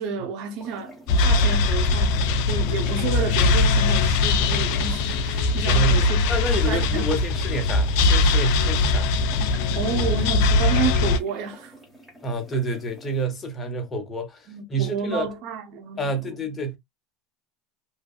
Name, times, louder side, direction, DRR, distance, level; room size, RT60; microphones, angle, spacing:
voice 1, 0.0-6.3 6.7-7.1 9.7-11.7 14.5-16.3, right 6 dB, 60° right, 0.6 m, -31 dB
sound 1, 0.6-13.3, equal, ahead, 1.1 m, -45 dB
sound 2, 1.1-11.2, left 3 dB, 70° left, 0.4 m, -21 dB
voice 2, 5.6-9.1 12.2-15.3 16.0-16.8, right 1 dB, 25° left, 0.9 m, -28 dB
2.6 x 2.2 x 2.3 m
supercardioid pair, 105°, 0 cm